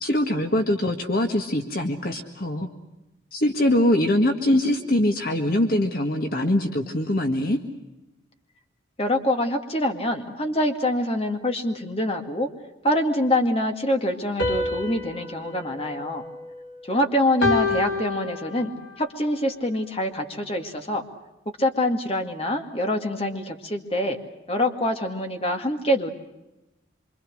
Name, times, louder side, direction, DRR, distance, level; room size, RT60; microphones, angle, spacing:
voice 1, 0.0-2.7 3.3-7.6, left 1 dB, 50° left, 5 dB, 1.7 m, -23 dB
voice 2, 9.0-12.5 12.8-16.2 16.9-21.0 21.6-24.2 24.5-26.1, left 1 dB, 30° left, 4 dB, 2.2 m, -25 dB
sound 1, 14.4-16.9 17.4-18.9, left 3 dB, 85° left, 4.1 m, -28 dB
26.5 x 25.5 x 6.5 m, 0.98 s
head